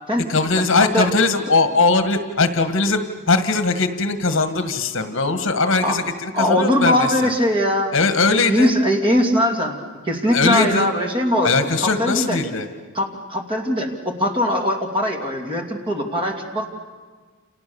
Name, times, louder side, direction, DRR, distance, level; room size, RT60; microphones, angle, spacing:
voice 1, 0.3-3.0 3.3-7.3 7.9-8.7 10.3-10.9 11.4-12.7, left 3 dB, 60° left, 9 dB, 1.7 m, -20 dB
voice 2, 5.8-8.0 8.5-9.8 10.0-11.5 11.8-12.4 12.9-16.7, left 1 dB, 25° right, 2 dB, 2.8 m, -21 dB
29.0 x 28.5 x 7.1 m, 1.5 s
head